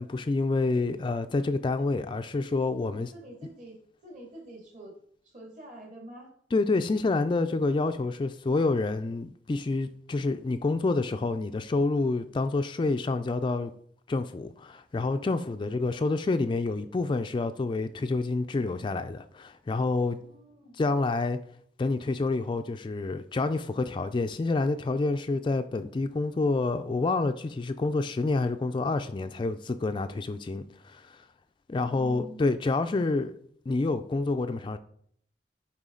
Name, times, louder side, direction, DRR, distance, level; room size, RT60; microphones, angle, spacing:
voice 1, 0.0-3.1 6.5-13.7 14.1-20.2 20.8-21.4 21.8-31.2 31.7-33.3 33.7-34.8, left 3 dB, 30° left, 0.3 m, -28 dB
voice 2, 2.9-4.9 5.2-6.3 15.5-16.7 20.1-20.8 31.7-32.7, right 1 dB, 45° right, 2.1 m, -48 dB
9.0 x 3.8 x 3.8 m
head